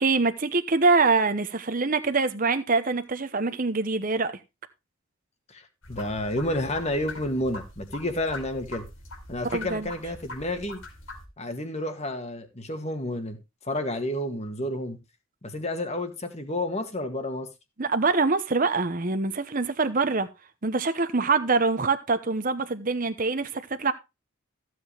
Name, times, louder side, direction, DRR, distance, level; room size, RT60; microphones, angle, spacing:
voice 1, 0.0-4.3 9.5-9.9 17.8-20.3 20.6-23.9, right 4 dB, 40° right, 0.9 m, -24 dB
voice 2, 5.5-8.8 9.3-10.8 11.4-13.4 13.6-15.0 15.4-17.5, left 1 dB, 30° left, 1.9 m, -30 dB
sound 1, 5.8-11.2, left 2 dB, 75° left, 4.6 m, -42 dB
15.0 x 7.8 x 3.3 m
head